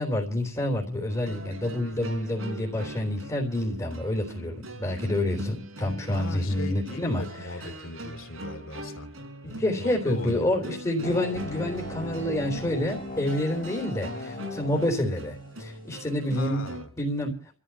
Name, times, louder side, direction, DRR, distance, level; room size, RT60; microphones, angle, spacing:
voice 1, 0.0-7.2 9.4-16.6 17.0-17.4, left 1 dB, 20° left, 3.6 m, -28 dB
sound 1, 1.1-16.9, right 1 dB, 85° right, 6.2 m, -41 dB
voice 2, 5.8-9.1 9.8-10.5 16.3-16.9, left 2 dB, 75° left, 2.5 m, -39 dB
sound 2, 11.0-16.0, left 2 dB, 45° left, 1.6 m, -39 dB
30.0 x 13.5 x 3.0 m
head